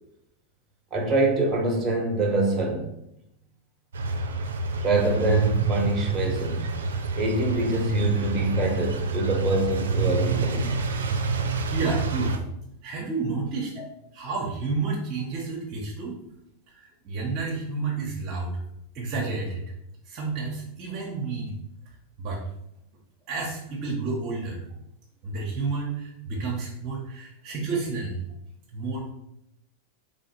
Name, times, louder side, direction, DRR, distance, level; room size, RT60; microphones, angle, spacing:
voice 1, 0.9-2.8 4.8-6.6 7.2-10.8 13.8-13.9, right 2 dB, 20° right, -1 dB, 1.3 m, -25 dB
sound 1, 3.9-12.4, right 3 dB, 80° right, 0.5 m, -27 dB
voice 2, 11.4-12.4 12.8-13.7 14.1-16.2 16.7-18.6 18.9-19.7 20.1-21.6 22.2-22.4 23.3-24.6 25.2-28.2 28.7-29.1, right 3 dB, 45° right, -2 dB, 1.0 m, -30 dB
3.4 x 3.3 x 4.4 m, 0.82 s
hypercardioid pair, 105°, 0 cm